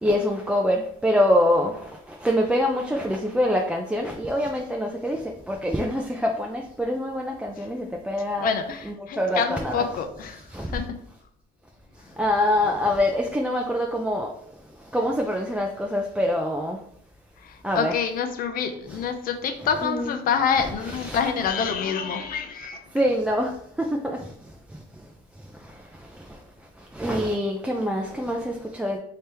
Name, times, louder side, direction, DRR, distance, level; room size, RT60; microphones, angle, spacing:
voice 1, 0.0-8.5 8.8-9.9 10.5-10.8 12.2-14.3 14.9-16.8 17.6-17.9 18.9-19.0 19.8-20.2 20.6-21.5 22.9-24.3 26.1-26.3 26.9-29.0, left 1 dB, 5° right, 0 dB, 0.4 m, -25 dB
voice 2, 8.4-11.0 17.4-22.8, left 6 dB, 60° left, 7 dB, 0.6 m, -27 dB
3.3 x 2.8 x 3.3 m, 0.68 s
cardioid pair, 110°, 17 cm